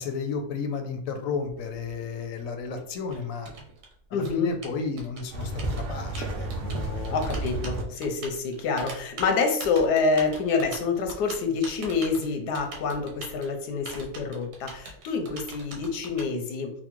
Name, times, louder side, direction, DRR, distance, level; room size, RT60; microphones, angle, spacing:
voice 1, 0.0-3.5 4.1-7.1, left 5 dB, 70° left, 5 dB, 0.9 m, -33 dB
Typing, 1.4-16.3, right 2 dB, 90° right, 1.3 m, -43 dB
voice 2, 4.1-4.5 7.1-16.7, left 4 dB, 90° left, 4 dB, 1.2 m, -27 dB
sound 1, 5.3-7.8, right 2 dB, 70° right, 0.5 m, -31 dB
4.3 x 2.1 x 3.0 m, 0.67 s
omnidirectional pair, 1.7 m